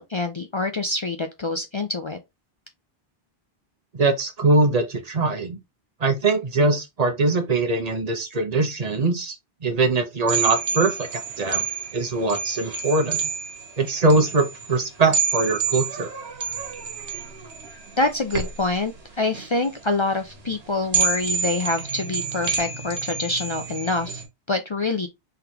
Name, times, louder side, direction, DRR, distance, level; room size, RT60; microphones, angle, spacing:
voice 1, 0.0-2.2 18.0-24.2 24.5-25.1, left 2 dB, 45° left, 0.4 m, -26 dB
voice 2, 3.9-5.6 6.0-9.3 9.6-11.6 11.9-13.2 13.8-16.1, right 3 dB, 40° right, 0.9 m, -22 dB
sound 1, 10.3-24.3, right 5 dB, 80° right, 1.4 m, -29 dB
3.8 x 3.3 x 2.9 m
omnidirectional pair, 1.0 m